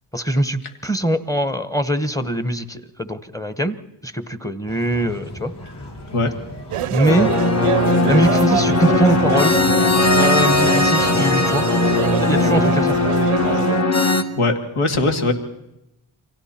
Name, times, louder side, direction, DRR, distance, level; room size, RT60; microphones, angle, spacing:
voice 1, 0.1-3.8 4.0-5.5 6.9-7.3 8.1-9.6 10.1-11.6 12.2-13.1, right 1 dB, 5° left, 12 dB, 1.0 m, -22 dB
sound 1, 4.7-13.4, left 1 dB, 55° left, 7.8 m, -37 dB
sound 2, 6.7-13.8, right 12 dB, 85° right, 0.7 m, -26 dB
sound 3, 7.1-14.2, left 2 dB, 30° left, 1.4 m, -18 dB
voice 2, 14.4-15.3, left 2 dB, 80° left, 4 dB, 2.5 m, -20 dB
29.0 x 24.0 x 4.3 m, 0.86 s
wide cardioid pair, 115°, 49 cm